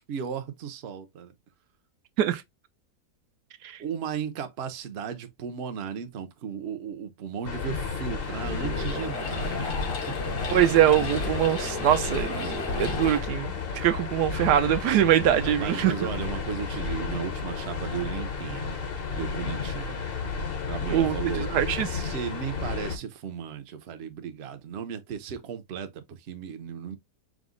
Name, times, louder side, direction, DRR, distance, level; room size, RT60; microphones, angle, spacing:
voice 1, 0.0-1.3 3.8-9.8 10.1-10.4 15.6-18.7 19.1-20.0 20.7-21.5 21.9-27.0, right 7 dB, 55° right, 0.8 m, -35 dB
sound 1, 7.4-23.0, left 5 dB, 45° left, 0.8 m, -32 dB
sound 2, 8.1-13.2, left 3 dB, 80° left, 2.0 m, -35 dB
voice 2, 10.5-15.9 20.9-22.0, right 11 dB, 80° right, 1.2 m, -23 dB
4.9 x 2.1 x 3.6 m
omnidirectional pair, 1.8 m